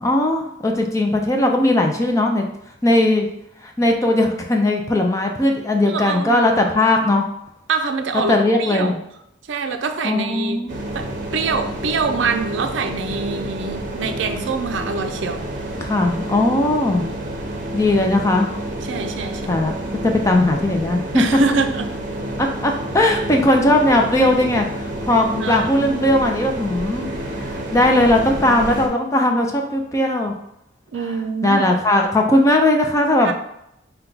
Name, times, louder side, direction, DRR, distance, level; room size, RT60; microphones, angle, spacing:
voice 1, 0.0-2.4 2.8-3.3 3.6-7.2 8.3-9.0 10.0-10.8 15.8-17.1 17.7-18.5 19.5-21.2 22.4-27.1 27.4-30.3 31.4-33.3, left 1 dB, 15° left, 2 dB, 0.4 m, -18 dB
voice 2, 5.9-6.5 7.7-9.0 9.5-10.6 10.9-15.5 18.8-19.5 21.1-21.9 25.4-26.0 30.9-31.7 33.2-33.3, right 4 dB, 75° right, 7 dB, 0.4 m, -25 dB
sound 1, 10.7-28.9, right 1 dB, 40° right, 0.7 m, -29 dB
5.6 x 2.2 x 3.8 m, 0.80 s
head